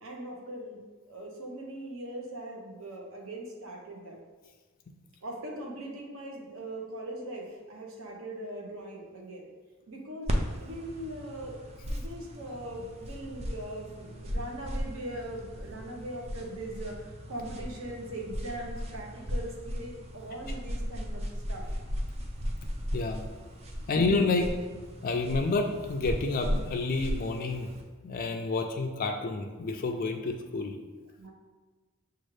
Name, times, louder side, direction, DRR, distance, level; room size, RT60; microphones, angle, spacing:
voice 1, 0.0-4.2 5.2-9.5 9.9-10.3 10.6-11.6 11.9-21.2 21.5-21.8 23.8-23.9 28.1-28.2 31.2-31.3, right 1 dB, 65° right, -1 dB, 0.8 m, -40 dB
sound 1, 10.3-27.8, equal, 30° right, 0.4 m, -36 dB
voice 2, 22.9-23.2 23.9-24.6 25.0-27.7 28.0-30.7, left 3 dB, 40° left, 3 dB, 0.3 m, -29 dB
6.2 x 2.4 x 3.1 m, 1.3 s
head